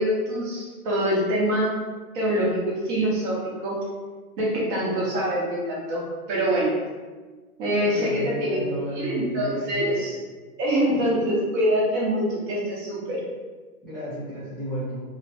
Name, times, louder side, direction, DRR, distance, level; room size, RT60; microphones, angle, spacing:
voice 1, 0.0-1.8 2.1-3.8 4.4-6.7 7.6-8.6 9.0-10.2 10.6-13.2, equal, 35° right, -5 dB, 0.9 m, -25 dB
voice 2, 7.9-10.1 13.8-15.0, right 1 dB, ahead, -14 dB, 0.5 m, -33 dB
2.9 x 2.1 x 2.8 m, 1.4 s
hypercardioid pair, 125°, 44 cm